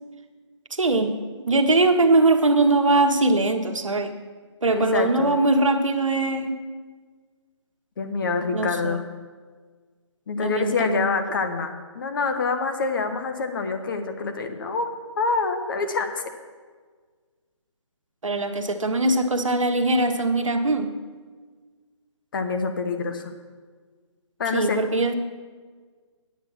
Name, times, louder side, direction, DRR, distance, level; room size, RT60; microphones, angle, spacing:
voice 1, 0.7-1.2 1.5-4.2 4.6-6.6 8.5-9.0 10.4-11.1 18.2-20.9 24.5-25.1, right 2 dB, 90° right, 6 dB, 1.2 m, -21 dB
voice 2, 4.7-5.4 8.0-9.0 10.3-14.9 15.2-16.1 22.3-23.3 24.4-24.8, left 4 dB, 45° left, 6 dB, 1.2 m, -26 dB
9.5 x 8.3 x 6.0 m, 1.5 s
figure-of-eight pair, 155°, 16 cm